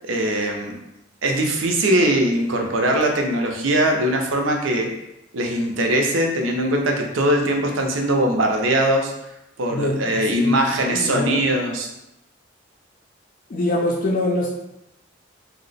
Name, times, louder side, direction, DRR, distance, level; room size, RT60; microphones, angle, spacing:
voice 1, 0.0-0.7 1.2-4.9 5.3-9.1 9.6-11.9, right 1 dB, 85° right, 2 dB, 0.6 m, -21 dB
voice 2, 9.7-10.5 10.8-11.5 13.5-14.5, left 1 dB, 45° left, -4 dB, 0.4 m, -24 dB
2.8 x 2.0 x 4.0 m, 0.89 s
head